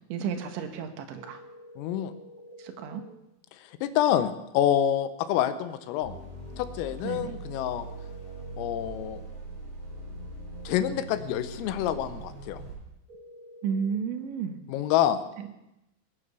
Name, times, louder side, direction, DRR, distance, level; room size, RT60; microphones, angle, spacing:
voice 1, 0.1-1.4 2.6-3.0 7.0-7.3 13.6-14.6, right 7 dB, 70° right, 6 dB, 3.4 m, -32 dB
sound 1, 1.2-3.1 7.1-9.1 13.1-13.9, left 1 dB, 55° right, 1.4 m, -49 dB
voice 2, 1.8-2.1 3.8-6.2 6.6-7.9 8.6-9.2 10.7-12.6 14.7-15.2, left 11 dB, 85° left, 11 dB, 3.6 m, -27 dB
sound 2, 6.0-12.7, right 2 dB, 30° right, 8.7 m, -41 dB
20.0 x 9.4 x 6.8 m, 0.88 s
omnidirectional pair, 5.9 m